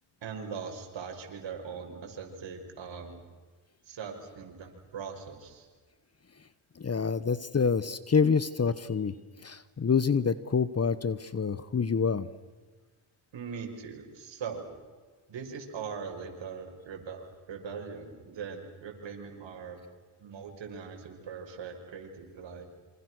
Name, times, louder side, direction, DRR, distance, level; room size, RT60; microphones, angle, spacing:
voice 1, 0.2-3.2 3.8-5.7 13.3-14.7 15.3-19.8 20.2-22.7, right 6 dB, 60° right, 3 dB, 6.1 m, -41 dB
voice 2, 6.8-9.1 9.4-12.3, left 5 dB, 30° left, 16 dB, 1.2 m, -27 dB
27.5 x 26.0 x 6.4 m, 1.4 s
supercardioid pair, 70°, 50 cm